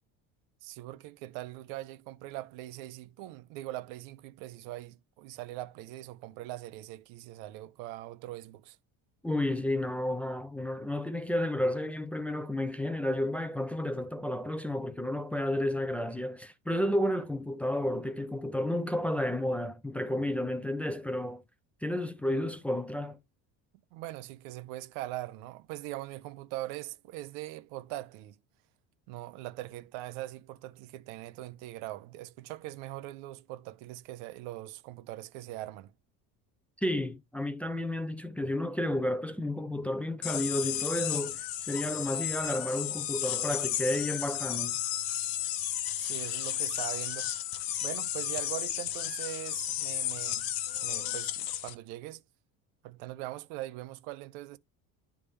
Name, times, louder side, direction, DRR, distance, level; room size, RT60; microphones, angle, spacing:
voice 1, 0.6-8.8 23.9-28.4 29.1-35.9 46.0-47.3 47.8-50.5 50.8-52.2 52.8-54.6, right 16 dB, 85° right, 0.6 m, -41 dB
voice 2, 9.2-21.4 21.8-23.2 36.8-44.8, left 1 dB, 5° left, 0.4 m, -31 dB
sound 1, 40.2-51.7, left 12 dB, 65° left, 0.9 m, -33 dB
9.7 x 3.5 x 3.2 m
cardioid pair, 130°, 37 cm